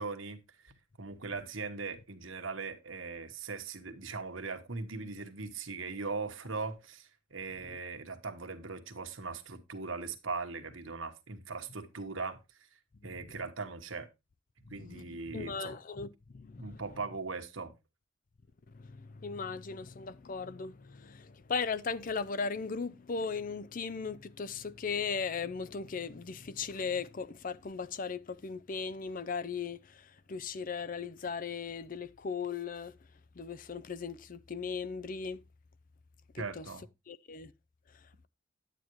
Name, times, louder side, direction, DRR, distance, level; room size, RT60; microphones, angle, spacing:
voice 1, 0.0-12.4 13.0-14.1 14.7-15.8 16.6-17.7 36.4-36.8, right 4 dB, 80° right, 1.4 m, -40 dB
voice 2, 13.0-13.4 14.7-16.8 18.7-33.0 33.3-35.4 36.3-36.7 37.1-37.5 37.9-38.1, left 5 dB, 45° left, 0.5 m, -38 dB
10.5 x 9.1 x 3.1 m
head